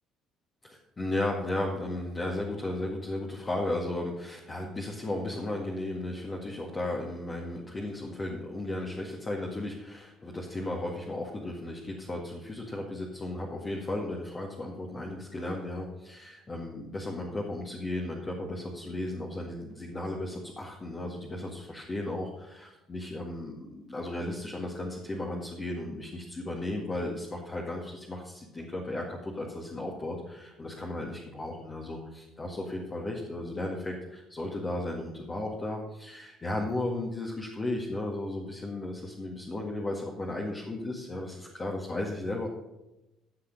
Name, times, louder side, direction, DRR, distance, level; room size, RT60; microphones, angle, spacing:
voice 1, 0.6-42.5, left 1 dB, 30° left, -1 dB, 1.9 m, -35 dB
15.5 x 5.9 x 5.3 m, 0.96 s
hypercardioid pair, 55°, 0 cm